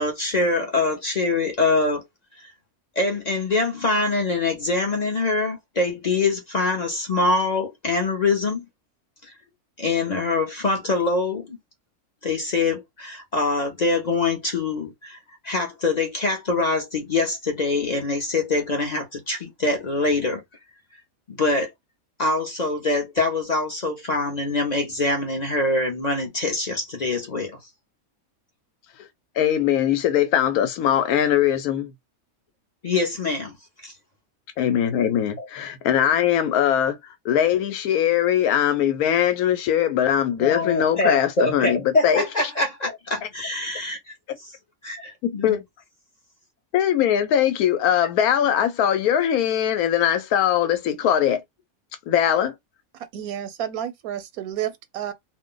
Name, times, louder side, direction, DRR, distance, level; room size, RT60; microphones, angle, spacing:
voice 1, 0.0-2.1 2.4-2.5 3.0-8.6 9.2-9.3 9.8-11.6 12.2-15.2 15.4-20.4 21.3-21.7 22.2-27.6 32.8-33.6 33.8-33.9 35.4-35.5 40.4-44.5 44.8-45.6, left 3 dB, 50° left, 0.5 m, -24 dB
voice 2, 29.4-31.9 34.6-37.0 37.2-42.2 45.2-45.6 46.7-51.4 52.1-52.5, left 10 dB, 90° left, 1.1 m, -21 dB
voice 3, 52.9-55.1, right 10 dB, 90° right, 1.1 m, -31 dB
2.5 x 2.1 x 3.7 m
omnidirectional pair, 1.5 m